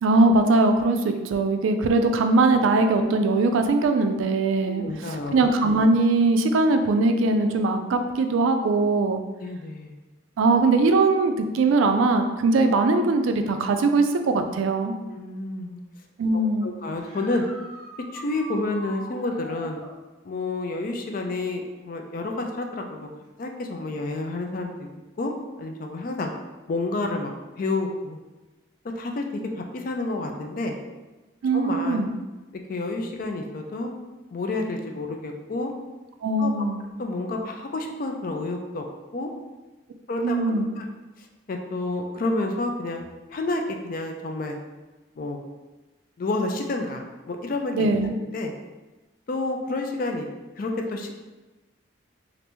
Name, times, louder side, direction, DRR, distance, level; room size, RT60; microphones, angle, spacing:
voice 1, 0.0-4.8 5.3-9.2 10.4-14.9 16.2-16.7 31.4-32.1 36.2-36.8 40.2-40.7 47.8-48.1, right 3 dB, 75° right, 7 dB, 0.3 m, -21 dB
voice 2, 4.7-5.4 9.4-9.9 15.1-15.8 16.3-17.4 18.1-19.8 20.2-23.1 23.4-24.9 25.2-25.3 25.6-26.3 26.7-28.2 29.0-30.7 31.5-32.1 32.7-33.9 34.3-35.7 36.4-36.7 37.0-38.9 39.1-39.3 40.1-40.9 41.2-43.0 43.3-44.6 45.2-45.4 46.2-48.5 49.3-50.3 50.6-51.2, left 2 dB, 45° left, 3 dB, 0.3 m, -29 dB
sound 1, 16.9-19.9 23.2-23.3 25.4-25.5 31.7-31.8, right 1 dB, 20° left, 0.8 m, -42 dB
3.3 x 2.5 x 2.9 m, 1.1 s
head